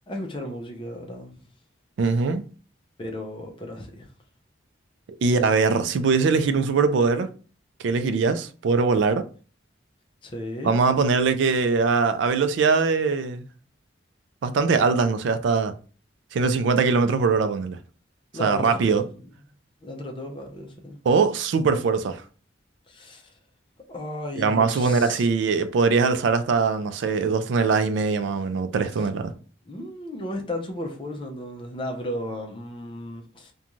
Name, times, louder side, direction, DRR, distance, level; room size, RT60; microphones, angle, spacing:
voice 1, 0.1-1.4 3.0-4.1 10.2-10.7 18.3-19.1 19.8-21.0 22.9-23.3 23.9-25.3 28.9-29.1 29.6-33.5, left 1 dB, 25° left, 0.5 m, -35 dB
voice 2, 2.0-2.4 5.2-7.3 7.8-9.3 10.6-13.5 14.4-15.7 16.3-17.8 18.4-19.1 21.0-22.2 24.4-29.3, right 4 dB, 75° right, 0.3 m, -22 dB
2.5 x 2.2 x 2.9 m
head